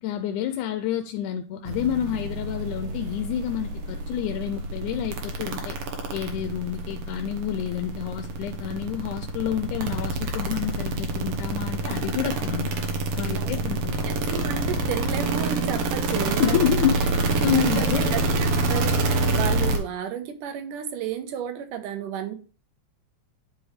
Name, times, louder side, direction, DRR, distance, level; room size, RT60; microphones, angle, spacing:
voice 1, 0.0-5.8 6.1-12.7 13.1-14.1 16.1-17.1 17.4-18.1, left 10 dB, 85° left, 7 dB, 2.0 m, -28 dB
sound 1, 1.7-19.8, right 3 dB, 60° right, 2.0 m, -27 dB
voice 2, 13.2-13.6 14.0-16.6 17.5-22.3, right 9 dB, 85° right, 7 dB, 2.5 m, -32 dB
10.5 x 4.9 x 3.2 m, 0.36 s
omnidirectional pair, 3.6 m